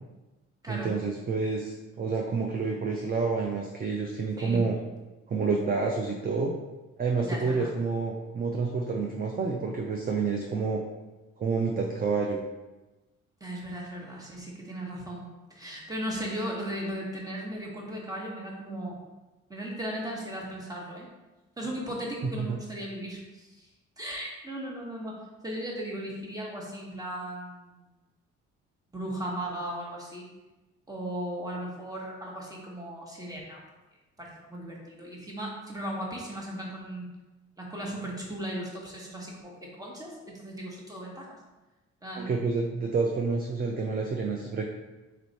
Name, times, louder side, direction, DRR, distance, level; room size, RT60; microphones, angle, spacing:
voice 1, 0.7-4.8 5.3-6.6 7.0-10.8 11.4-12.4 22.5-22.6 42.2-44.6, right 4 dB, 30° right, 1 dB, 0.5 m, -28 dB
voice 2, 4.4-4.7 7.2-7.7 13.4-19.0 19.5-21.1 21.6-23.7 24.0-27.8 28.9-30.3 30.9-33.6 34.2-37.1 37.6-41.4 42.0-42.3, right 1 dB, 10° right, -2 dB, 1.3 m, -37 dB
4.1 x 3.1 x 4.1 m, 1.1 s
cardioid pair, 90°, 30 cm